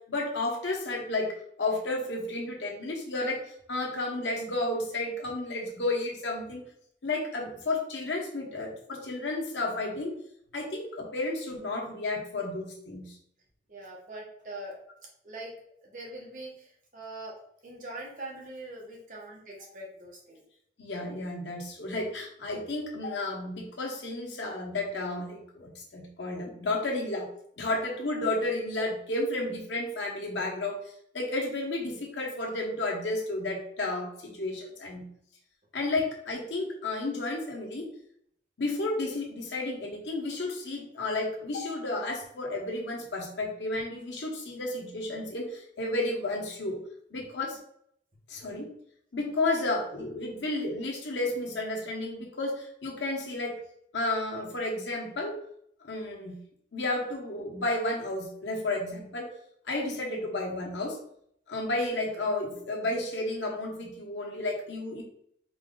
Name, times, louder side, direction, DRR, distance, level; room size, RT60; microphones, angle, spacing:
voice 1, 0.1-3.4 3.7-6.6 7.0-10.1 10.5-13.2 20.8-27.3 27.6-30.8 31.1-35.1 35.7-37.9 38.6-46.8 47.1-47.6 48.3-48.7 49.1-53.5 53.9-55.3 55.8-56.4 56.7-59.3 59.7-61.0 61.5-65.0, left 2 dB, 90° left, -1 dB, 1.2 m, -32 dB
voice 2, 13.7-14.8 15.2-15.5 15.8-17.3 17.6-20.4 27.7-27.8, right 2 dB, 45° right, -3 dB, 1.2 m, -42 dB
4.4 x 2.5 x 3.8 m, 0.70 s
head